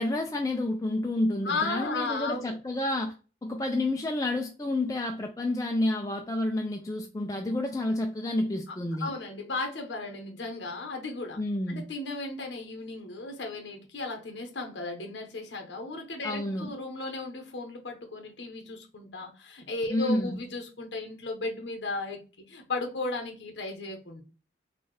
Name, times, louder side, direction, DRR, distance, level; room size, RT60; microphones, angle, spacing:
voice 1, 0.0-3.1 3.4-9.1 11.4-11.8 16.2-16.7 19.9-20.4, left 1 dB, 20° left, 0.3 m, -29 dB
voice 2, 1.4-2.6 8.7-11.4 11.7-22.2 22.5-24.2, left 3 dB, 85° left, 0.8 m, -35 dB
4.1 x 2.3 x 3.1 m
head